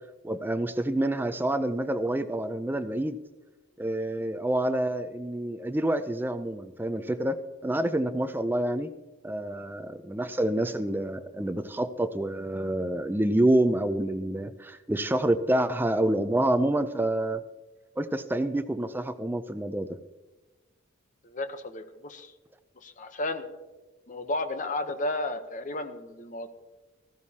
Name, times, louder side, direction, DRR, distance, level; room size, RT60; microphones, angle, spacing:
voice 1, 0.2-3.2 3.8-8.9 9.2-17.4 18.0-20.0, right 1 dB, 10° right, 11 dB, 0.4 m, -27 dB
voice 2, 21.2-22.3 22.8-23.5 24.1-26.5, left 2 dB, 35° left, 8 dB, 0.8 m, -33 dB
15.0 x 15.0 x 2.8 m, 1.2 s
head